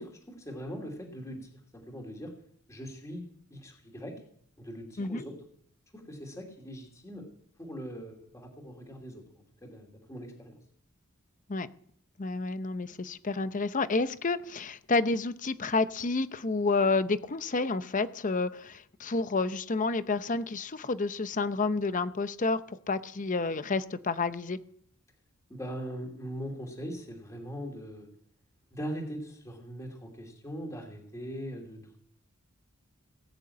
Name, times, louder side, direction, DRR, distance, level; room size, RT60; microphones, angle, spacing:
voice 1, 0.0-1.6 1.9-2.3 2.7-3.2 3.5-4.2 4.6-5.4 5.9-7.3 7.6-9.2 9.6-10.6 25.5-28.1 28.7-32.0, equal, 15° left, 1 dB, 2.6 m, -41 dB
voice 2, 12.2-24.6, left 3 dB, 35° left, 13 dB, 0.7 m, -30 dB
19.0 x 6.8 x 8.5 m, 0.65 s
head